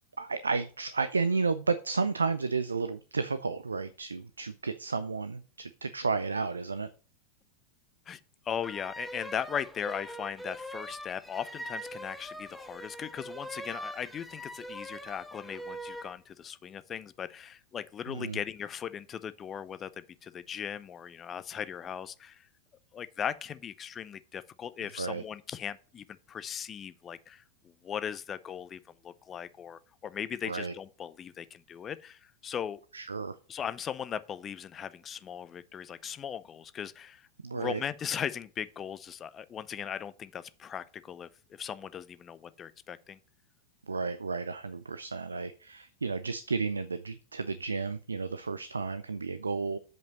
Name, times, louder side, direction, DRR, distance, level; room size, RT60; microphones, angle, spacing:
voice 1, 0.2-6.9 18.1-18.4 25.0-25.2 30.5-30.7 32.9-33.4 37.4-37.8 43.9-49.8, right 4 dB, 75° right, 0.4 m, -32 dB
voice 2, 8.5-22.5 22.9-32.8 33.5-43.2, left 8 dB, 25° left, 0.5 m, -38 dB
sound 1, 8.6-16.1, right 1 dB, ahead, 0.9 m, -42 dB
7.7 x 5.3 x 5.3 m
figure-of-eight pair, 90°, 0 cm